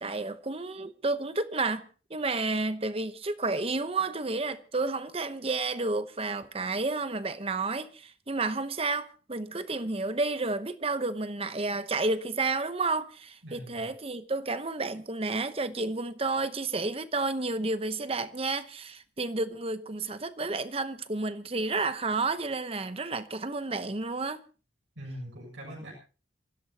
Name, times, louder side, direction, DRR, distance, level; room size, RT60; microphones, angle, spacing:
voice 1, 0.0-24.4, right 3 dB, 30° right, 0.9 m, -31 dB
voice 2, 13.4-13.9 25.0-25.9, equal, 75° right, 7.2 m, -42 dB
26.5 x 15.5 x 2.9 m
head